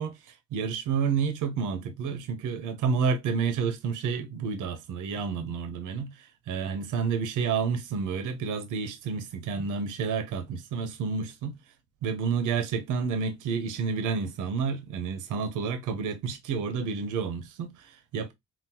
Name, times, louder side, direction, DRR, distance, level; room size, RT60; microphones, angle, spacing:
voice 1, 0.0-11.5 12.0-18.3, right 5 dB, 85° right, 0.7 m, -30 dB
3.8 x 2.1 x 2.8 m
cardioid pair, 90°, 30 cm